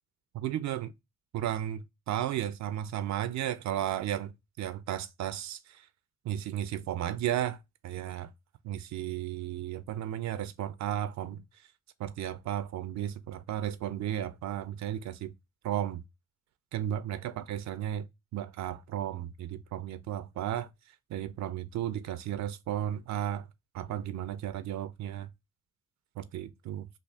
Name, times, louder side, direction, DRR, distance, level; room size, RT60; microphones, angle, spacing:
voice 1, 0.3-0.9 1.3-5.9 6.2-7.6 7.8-8.3 8.6-11.4 12.0-15.3 15.6-16.0 16.7-18.1 18.3-20.7 21.1-23.5 23.7-25.3 26.2-26.9, right 11 dB, 65° right, 0.4 m, -34 dB
3.5 x 2.3 x 3.3 m
cardioid pair, 90°, 30 cm